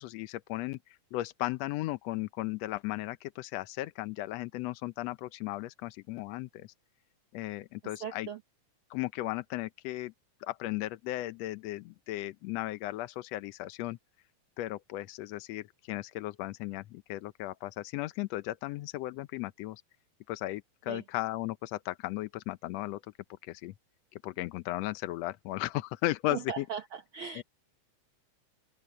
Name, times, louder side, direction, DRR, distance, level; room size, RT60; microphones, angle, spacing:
voice 1, 0.0-6.7 7.3-8.3 8.9-10.1 10.4-14.0 14.6-19.8 20.3-23.0 23.4-23.7 24.1-26.7 27.3-27.4, left 17 dB, 80° left, 1.5 m, -36 dB
voice 2, 8.0-8.4 20.9-21.0 26.3-27.4, right 8 dB, 70° right, 1.2 m, -38 dB
omnidirectional pair, 3.6 m